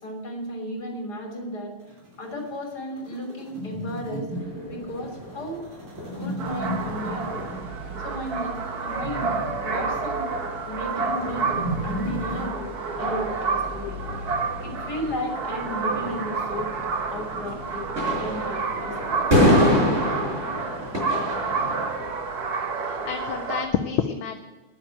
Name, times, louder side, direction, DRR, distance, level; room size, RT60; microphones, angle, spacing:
voice 1, 0.0-1.7 2.2-4.3 4.7-5.7 6.2-7.5 8.0-8.5 8.8-9.3 9.6-10.3 10.6-12.7 13.0-14.0 14.6-16.7 17.1-19.2, equal, 45° left, 1 dB, 3.9 m, -34 dB
sound 1, 1.8-12.5, right 1 dB, 80° right, 3.7 m, -35 dB
sound 2, 4.3-22.1, left 1 dB, 35° right, 5.7 m, -29 dB
sound 3, 6.4-23.7, right 4 dB, 50° right, 1.6 m, -29 dB
voice 2, 22.8-24.4, left 8 dB, 75° left, 6 dB, 1.6 m, -28 dB
10.5 x 8.9 x 9.1 m, 1.2 s
omnidirectional pair, 2.4 m